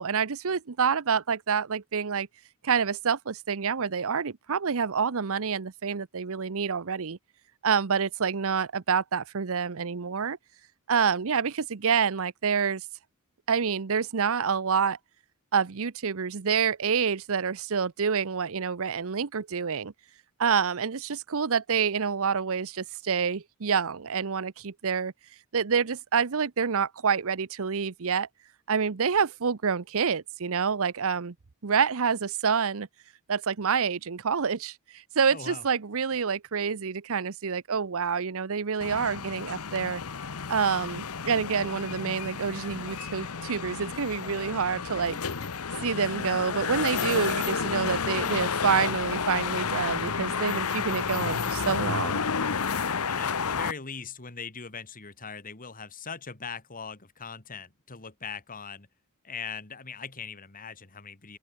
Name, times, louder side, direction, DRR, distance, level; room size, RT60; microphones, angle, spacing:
voice 1, 0.0-2.3 2.6-7.2 7.6-10.4 10.9-12.8 13.5-15.0 15.5-19.9 20.4-25.1 25.5-28.3 28.7-31.3 31.6-32.9 33.3-40.0 40.5-45.2 45.8-52.2, right 6 dB, 65° right, 0.8 m, -27 dB
voice 2, 35.3-35.6 53.1-58.9 59.2-61.4, left 5 dB, 40° left, 2.6 m, -40 dB
sound 1, 38.8-53.7, left 6 dB, 75° left, 1.0 m, -31 dB
sound 2, 41.1-47.8, right 1 dB, 10° right, 7.7 m, -57 dB
open air
head